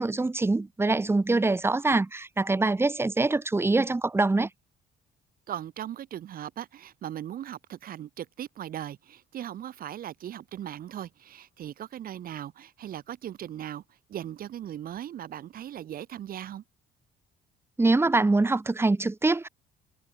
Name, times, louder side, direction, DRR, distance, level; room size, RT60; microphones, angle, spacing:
voice 1, 0.0-4.5 17.8-19.5, right 3 dB, 15° right, 2.6 m, -24 dB
voice 2, 5.5-13.8 14.1-16.6, right 11 dB, 60° right, 5.6 m, -38 dB
cardioid pair, 110°, 17 cm